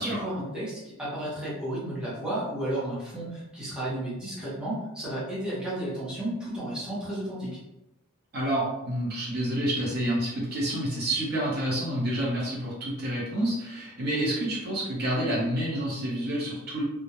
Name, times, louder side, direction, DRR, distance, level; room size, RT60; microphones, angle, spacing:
voice 1, 0.0-7.6, right 1 dB, 5° right, -9 dB, 0.7 m, -33 dB
voice 2, 8.3-16.8, right 1 dB, 45° right, -6 dB, 0.7 m, -28 dB
2.2 x 2.0 x 2.8 m, 0.94 s
head